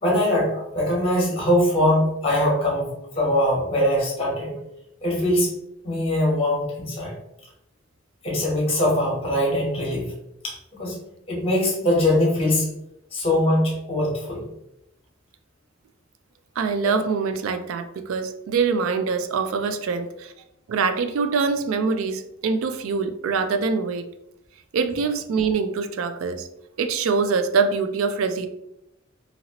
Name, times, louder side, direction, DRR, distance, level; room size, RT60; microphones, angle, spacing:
voice 1, 0.0-4.6 5.0-5.5 5.8-7.1 8.2-10.1 10.4-11.0 11.3-12.7 13.1-14.5, left 1 dB, 30° left, -3 dB, 1.1 m, -22 dB
voice 2, 16.6-20.3 20.7-24.1 24.7-26.5 26.8-28.5, right 5 dB, 80° right, 9 dB, 0.3 m, -24 dB
2.8 x 2.8 x 2.8 m, 0.83 s
head